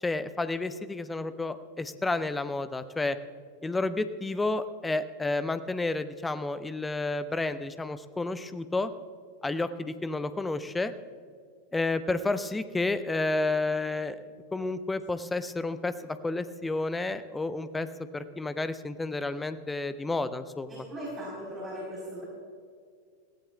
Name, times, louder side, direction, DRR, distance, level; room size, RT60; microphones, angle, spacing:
voice 1, 0.0-3.2 3.6-8.9 9.4-10.9 11.7-14.2 14.5-17.9 18.1-20.9, left 2 dB, 10° left, 13 dB, 0.6 m, -31 dB
voice 2, 20.7-22.2, equal, 15° right, -5 dB, 3.7 m, -38 dB
21.0 x 16.0 x 2.3 m, 2.1 s
figure-of-eight pair, 90°, 0 cm